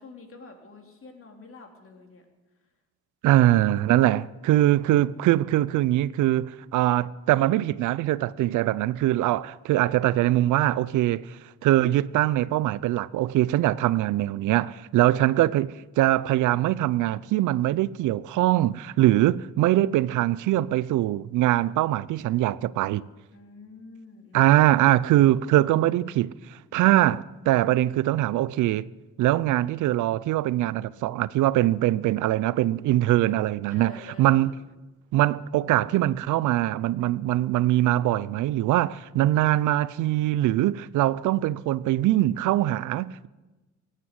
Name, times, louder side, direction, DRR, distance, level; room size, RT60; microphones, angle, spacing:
voice 1, 0.0-2.2 15.0-15.7 23.3-24.8 33.7-34.6, left 3 dB, 45° left, 3.1 m, -48 dB
voice 2, 3.2-23.0 24.3-28.8 29.2-34.5 35.1-43.3, right 14 dB, 80° right, 0.5 m, -22 dB
17.0 x 8.9 x 8.1 m
cardioid pair, 90°, 30 cm